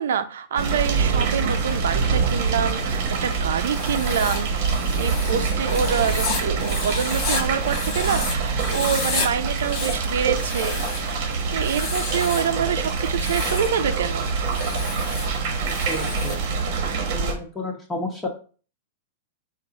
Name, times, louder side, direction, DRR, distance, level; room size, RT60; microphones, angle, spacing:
voice 1, 0.0-4.5 5.0-10.8 11.5-14.3, right 7 dB, 80° right, 10 dB, 0.5 m, -26 dB
sound 1, 0.6-17.4, right 4 dB, 50° right, 1.0 m, -25 dB
Writing, 3.6-8.3 8.6-9.3 9.6-11.1 11.6-12.5 13.0-13.8 14.5-16.4, left 4 dB, 40° left, 1.1 m, -32 dB
voice 2, 15.7-16.3 17.0-18.3, left 1 dB, 10° left, -1 dB, 0.9 m, -31 dB
4.7 x 2.5 x 3.9 m, 0.39 s
hypercardioid pair, 140°, 0 cm